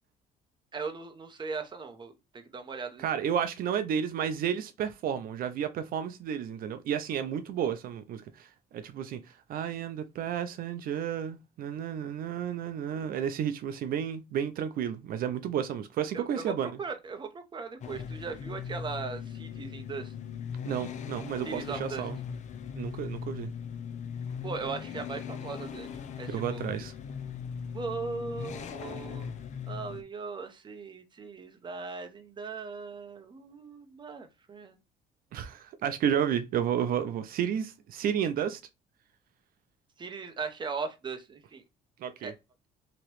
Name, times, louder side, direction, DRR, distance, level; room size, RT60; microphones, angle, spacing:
voice 1, 0.7-3.2 16.1-20.1 21.4-22.1 24.4-25.9 26.2-26.6 27.7-29.3 29.7-34.8 40.0-41.6 42.2-42.3, right 4 dB, 25° right, 0.7 m, -39 dB
voice 2, 3.0-16.7 20.7-22.2 22.8-23.5 26.3-26.9 35.3-38.6 42.0-42.3, right 8 dB, 60° right, 0.4 m, -32 dB
sound 1, 17.8-30.0, left 7 dB, 45° left, 0.5 m, -39 dB
2.9 x 2.8 x 3.0 m
cardioid pair, 110°, 17 cm